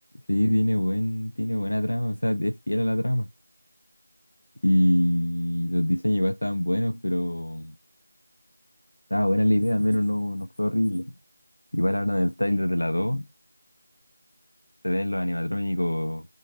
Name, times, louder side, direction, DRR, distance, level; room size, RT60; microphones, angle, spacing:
voice 1, 0.3-3.3 4.6-7.8 9.1-11.1 11.7-13.2 14.8-16.4, left 1 dB, 85° left, 0.4 m, -24 dB
5.0 x 2.5 x 2.6 m
figure-of-eight pair, 175°, 0 cm